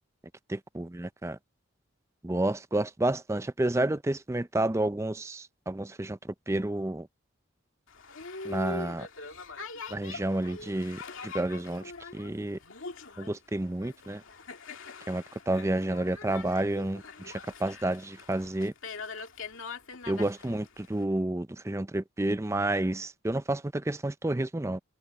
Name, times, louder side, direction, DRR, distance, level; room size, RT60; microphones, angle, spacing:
voice 1, 0.5-0.8 1.2-1.4 2.2-6.2 6.5-7.1 8.4-9.1 9.9-12.6 13.2-14.2 15.1-18.7 20.1-24.8, right 1 dB, 15° right, 0.5 m, -30 dB
Boat Water vehicle, 7.9-21.0, left 4 dB, 75° left, 2.2 m, -43 dB
head